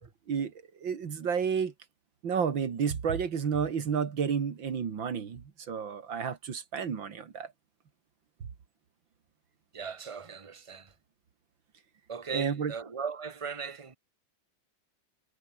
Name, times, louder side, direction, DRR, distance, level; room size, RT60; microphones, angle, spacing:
voice 1, 0.8-1.7 2.2-7.5 12.3-12.7, right 6 dB, 85° right, 2.8 m, -31 dB
voice 2, 9.7-10.9 12.1-14.0, right 6 dB, 20° right, 1.3 m, -38 dB
omnidirectional pair, 2.0 m